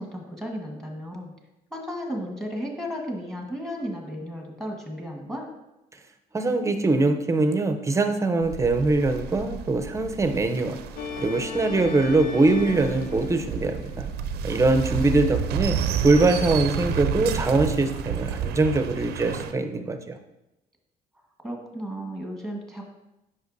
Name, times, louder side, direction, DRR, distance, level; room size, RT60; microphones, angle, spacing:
voice 1, 0.0-1.3 1.7-5.5 14.9-15.3 21.4-22.9, equal, 5° left, 1 dB, 1.4 m, -34 dB
voice 2, 6.3-10.8 11.2-14.1 14.4-15.8 16.0-20.2, right 2 dB, 15° right, 7 dB, 0.6 m, -22 dB
sound 1, 8.4-19.5, right 8 dB, 70° right, 0.5 m, -31 dB
sound 2, 11.0-15.4, left 5 dB, 70° left, 0.6 m, -37 dB
8.0 x 5.6 x 2.6 m, 0.92 s
cardioid pair, 110°, 17 cm